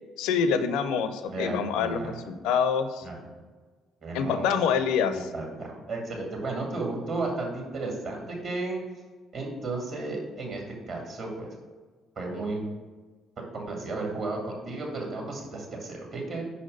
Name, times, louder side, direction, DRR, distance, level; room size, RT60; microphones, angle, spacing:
voice 1, 0.2-3.1 4.1-5.3, left 6 dB, 65° left, 11 dB, 0.4 m, -26 dB
voice 2, 1.3-2.2 3.0-3.3 4.0-4.6 5.1-8.8 9.3-11.5 12.2-12.7 13.5-16.4, right 2 dB, 55° right, -1 dB, 2.0 m, -33 dB
5.9 x 4.1 x 5.3 m, 1.4 s
figure-of-eight pair, 45°, 0 cm